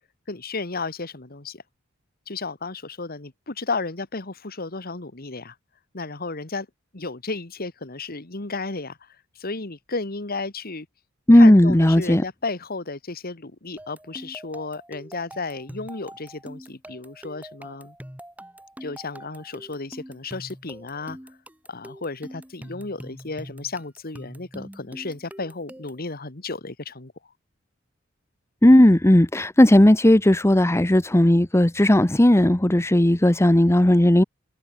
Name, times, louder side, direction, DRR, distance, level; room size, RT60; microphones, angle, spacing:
voice 1, 0.3-1.6 2.3-5.6 5.9-6.7 6.9-9.0 9.4-10.9 11.3-18.0 18.8-21.2 21.7-27.1, left 3 dB, 50° left, 1.8 m, -33 dB
voice 2, 11.3-12.2 28.6-34.2, left 1 dB, 15° left, 0.8 m, -15 dB
sound 1, 13.8-26.1, equal, 10° right, 5.4 m, -43 dB
head